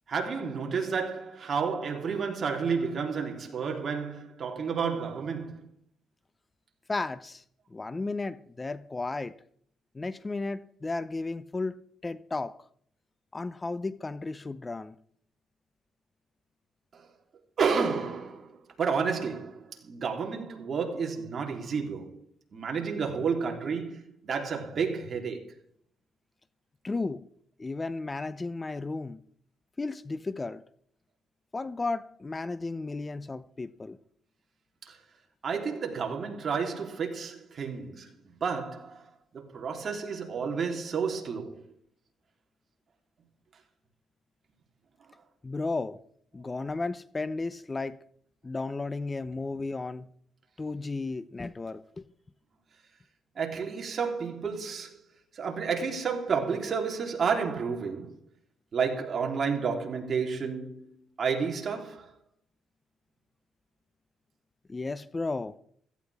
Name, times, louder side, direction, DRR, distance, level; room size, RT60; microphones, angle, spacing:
voice 1, 0.1-5.7 16.9-17.1 17.6-22.2 22.5-25.4 34.9-35.0 35.4-39.1 39.3-41.6 49.3-49.4 53.4-55.0 55.3-58.2 58.7-62.1, right 5 dB, 50° right, 3.5 m, -31 dB
voice 2, 6.9-7.4 7.7-9.3 9.9-12.5 13.3-14.9 26.8-27.2 27.6-29.2 29.8-30.6 31.5-34.0 45.4-46.0 46.3-48.0 48.4-50.1 50.6-52.1 64.7-65.6, left 3 dB, 25° left, 0.6 m, -34 dB
16.5 x 15.5 x 3.6 m
cardioid pair, 90°, 0 cm